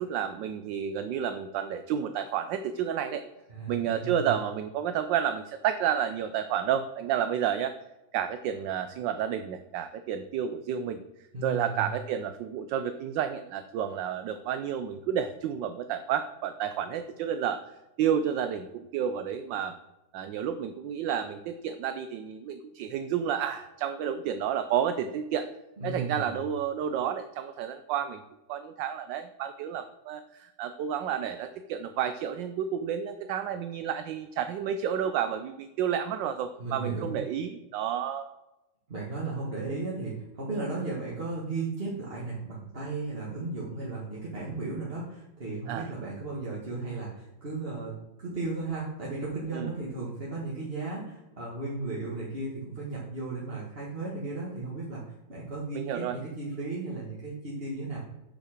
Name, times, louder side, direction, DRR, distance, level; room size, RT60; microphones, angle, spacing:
voice 1, 0.0-3.2 3.7-7.7 8.1-11.0 11.4-17.6 18.0-19.8 20.1-25.5 25.8-28.2 28.5-38.3 45.7-45.9 49.5-49.7 55.7-56.2, right 9 dB, 75° right, 9 dB, 1.2 m, -30 dB
voice 2, 3.5-4.3 11.3-11.9 25.8-26.3 36.6-37.2 38.9-55.0 55.3-58.0, right 3 dB, 30° right, -5 dB, 1.7 m, -35 dB
8.6 x 5.5 x 6.5 m, 0.94 s
omnidirectional pair, 2.2 m